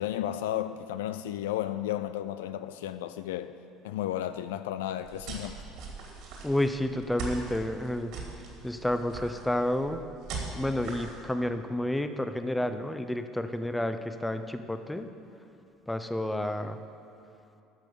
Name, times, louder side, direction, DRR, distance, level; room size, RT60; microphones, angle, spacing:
voice 1, 0.0-3.6 3.8-5.6, left 12 dB, 75° left, 0.3 m, -33 dB
sound 1, 5.0-11.2, right 4 dB, 65° right, 2.4 m, -41 dB
voice 2, 6.4-8.1 8.6-10.0 10.5-15.1 15.9-16.8, left 1 dB, 10° left, 0.8 m, -30 dB
13.5 x 6.1 x 7.0 m
hypercardioid pair, 65°, 0 cm